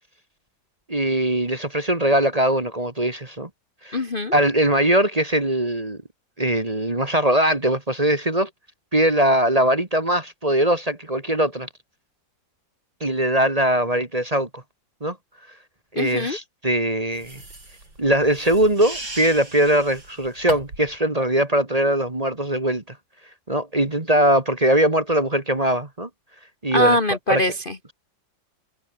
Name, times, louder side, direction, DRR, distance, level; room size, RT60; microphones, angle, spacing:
voice 1, 0.9-3.5 3.8-4.0 4.3-6.0 6.4-8.5 8.9-11.7 13.0-14.6 15.0-15.2 15.9-17.4 18.0-23.0 23.5-26.1 26.6-27.0 27.3-27.4, right 1 dB, 20° right, 1.8 m, -21 dB
voice 2, 3.9-4.3 15.9-16.4 26.7-27.9, left 1 dB, 30° left, 1.3 m, -22 dB
sound 1, 17.1-20.9, right 2 dB, 80° right, 8.7 m, -38 dB
omnidirectional pair, 2.0 m